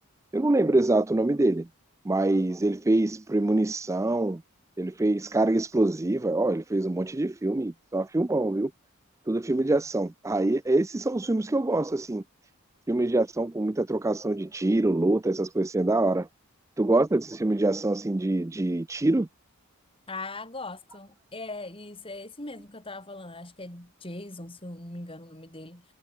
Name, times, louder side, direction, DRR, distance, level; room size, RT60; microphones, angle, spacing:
voice 1, 0.3-1.7 2.1-4.4 4.8-8.7 9.3-12.2 12.9-16.3 16.8-19.3, right 2 dB, 15° right, 0.4 m, -25 dB
voice 2, 20.1-25.8, left 2 dB, 25° left, 5.8 m, -40 dB
head